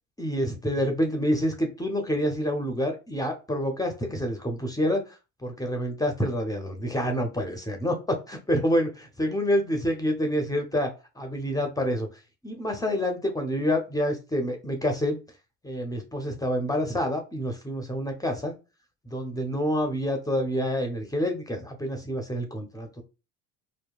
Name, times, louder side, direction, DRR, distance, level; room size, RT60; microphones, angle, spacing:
voice 1, 0.2-5.2 5.4-12.1 12.4-15.2 15.6-18.5 19.0-23.0, equal, 10° left, 4 dB, 0.5 m, -27 dB
2.8 x 2.2 x 2.2 m, 0.29 s
hypercardioid pair, 80°, 34 cm